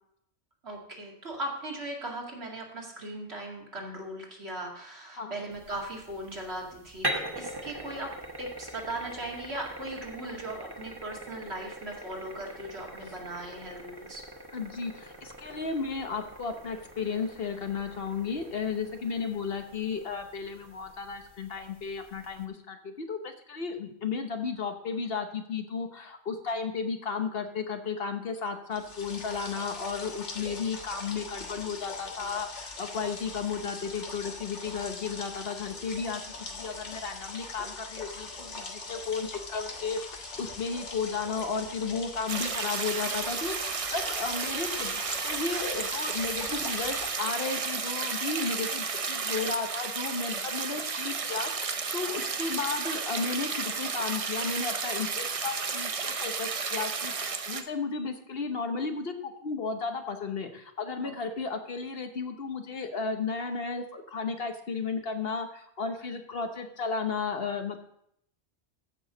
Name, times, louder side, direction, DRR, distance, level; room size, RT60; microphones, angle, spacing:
voice 1, 0.6-8.1 8.4-14.2 61.0-61.1, right 1 dB, 65° right, -2 dB, 2.5 m, -38 dB
sound 1, 5.5-22.4, right 1 dB, 20° right, 1.2 m, -42 dB
voice 2, 14.5-36.2 36.5-67.8, left 5 dB, 60° left, 6 dB, 1.2 m, -34 dB
sound 2, 28.7-47.1, left 3 dB, 85° left, 1.7 m, -42 dB
sound 3, 42.3-57.6, right 5 dB, 40° right, 0.6 m, -32 dB
15.0 x 6.2 x 3.9 m, 0.71 s
omnidirectional pair, 1.2 m